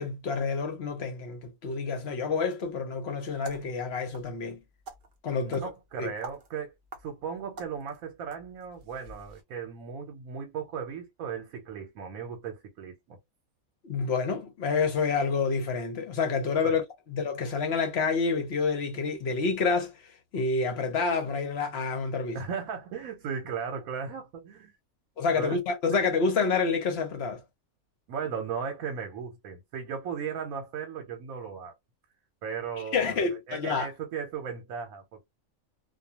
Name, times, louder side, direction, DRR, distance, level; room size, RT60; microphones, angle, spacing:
voice 1, 0.0-4.6 5.2-5.7 6.0-6.1 13.8-22.4 25.2-27.4 32.9-33.9, left 4 dB, 55° left, 0.8 m, -28 dB
sound 1, 3.3-9.4, right 4 dB, 50° right, 0.6 m, -49 dB
voice 2, 5.4-6.7 7.0-13.2 16.6-16.8 22.3-24.7 25.4-25.6 28.1-31.7 32.4-33.2 33.5-35.3, right 6 dB, 80° right, 1.1 m, -36 dB
2.4 x 2.3 x 2.7 m
omnidirectional pair, 1.5 m